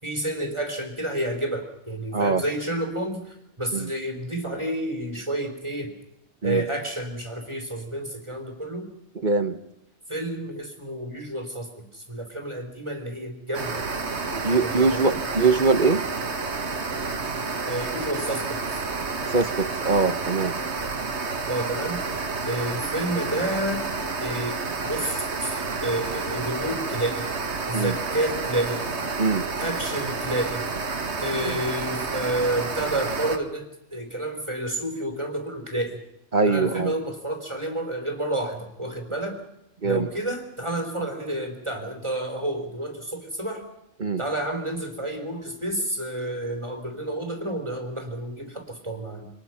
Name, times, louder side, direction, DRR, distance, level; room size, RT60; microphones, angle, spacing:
voice 1, 0.0-6.0 6.4-8.9 10.1-13.9 14.6-15.2 17.7-18.8 21.5-22.0 22.5-23.9 24.2-24.6 24.8-27.3 27.7-28.8 29.6-30.7 31.2-36.0 36.4-39.4 39.8-43.6 44.2-49.3, right 1 dB, 20° right, 4 dB, 3.8 m, -30 dB
voice 2, 2.1-2.4 3.7-3.9 6.4-6.6 9.2-9.6 14.3-16.0 19.3-20.5 27.7-28.0 29.2-29.5 31.4-31.6 36.3-36.9 39.8-40.1 44.0-44.2, right 4 dB, 35° right, 10 dB, 1.4 m, -22 dB
sound 1, 13.5-33.4, right 4 dB, 55° right, 2.0 m, -30 dB
28.0 x 25.5 x 5.9 m, 0.84 s
omnidirectional pair, 1.4 m